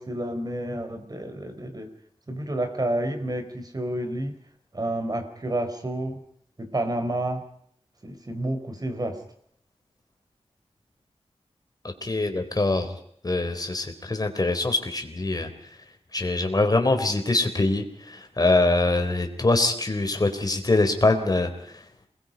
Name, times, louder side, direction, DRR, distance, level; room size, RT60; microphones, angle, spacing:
voice 1, 0.0-1.9 2.3-4.3 4.7-6.2 6.6-7.4 8.0-9.2, right 1 dB, 35° right, 7 dB, 3.9 m, -29 dB
voice 2, 12.0-12.9 13.2-15.5 16.1-21.5, left 2 dB, 35° left, 6 dB, 3.8 m, -23 dB
28.0 x 21.0 x 5.3 m, 0.65 s
wide cardioid pair, 100°, 11 cm